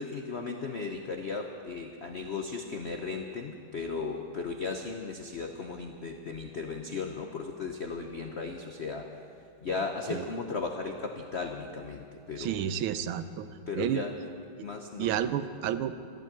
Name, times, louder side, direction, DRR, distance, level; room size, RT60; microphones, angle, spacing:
voice 1, 0.0-9.1 9.6-12.6 13.7-14.1 14.6-15.2, left 4 dB, 70° left, 3 dB, 0.6 m, -36 dB
voice 2, 12.4-13.5 13.7-14.0 15.0-15.9, right 10 dB, 90° right, 12 dB, 1.5 m, -31 dB
14.0 x 12.0 x 7.6 m, 2.4 s
omnidirectional pair, 2.3 m